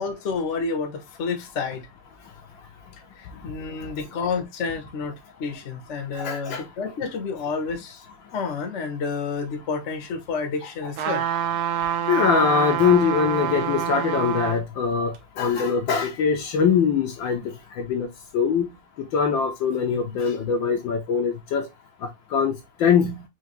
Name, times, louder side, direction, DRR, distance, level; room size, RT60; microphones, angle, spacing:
voice 1, 0.0-1.9 3.2-8.0 8.3-11.2, left 5 dB, 45° left, 1.0 m, -30 dB
voice 2, 6.1-6.6 10.8-11.0 12.1-18.1 18.3-21.7 22.3-23.2, left 6 dB, 70° left, 1.4 m, -23 dB
sound 1, 11.0-14.6 15.1-15.2, right 9 dB, 85° right, 1.7 m, -26 dB
4.6 x 3.0 x 2.9 m
omnidirectional pair, 2.4 m